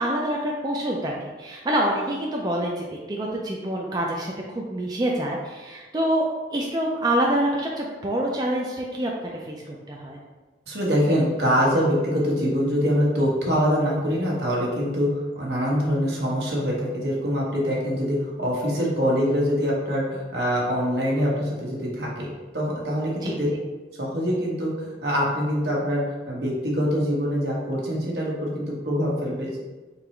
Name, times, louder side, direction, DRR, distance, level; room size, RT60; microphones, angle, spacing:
voice 1, 0.0-10.2 23.2-23.4, right 1 dB, 25° right, -2 dB, 0.4 m, -26 dB
voice 2, 10.7-22.3 22.5-23.5 24.0-29.6, equal, 75° right, -4 dB, 1.2 m, -24 dB
3.8 x 2.9 x 4.4 m, 1.2 s
head